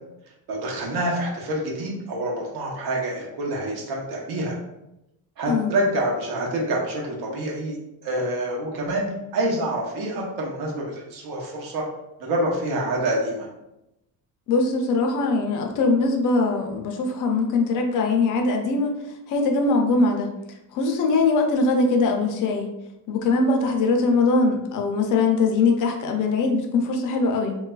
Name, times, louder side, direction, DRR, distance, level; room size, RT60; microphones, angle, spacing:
voice 1, 0.5-4.6 5.4-7.8 8.0-9.1 9.3-11.8 12.2-13.5, right 1 dB, 80° right, -2 dB, 0.9 m, -27 dB
voice 2, 14.5-19.0 19.3-20.3 20.7-22.7 23.1-27.6, left 3 dB, 55° left, 3 dB, 0.4 m, -21 dB
3.2 x 2.3 x 2.3 m, 0.90 s
cardioid pair, 175°, 38 cm